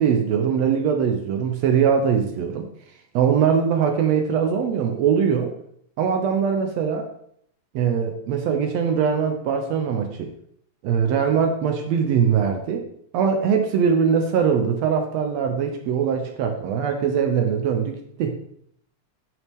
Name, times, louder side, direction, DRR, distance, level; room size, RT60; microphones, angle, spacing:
voice 1, 0.0-2.7 3.1-5.5 6.0-7.1 7.7-10.3 10.8-12.8 13.1-18.3, right 7 dB, 75° right, 4 dB, 1.8 m, -21 dB
9.6 x 6.2 x 3.5 m, 0.69 s
omnidirectional pair, 3.5 m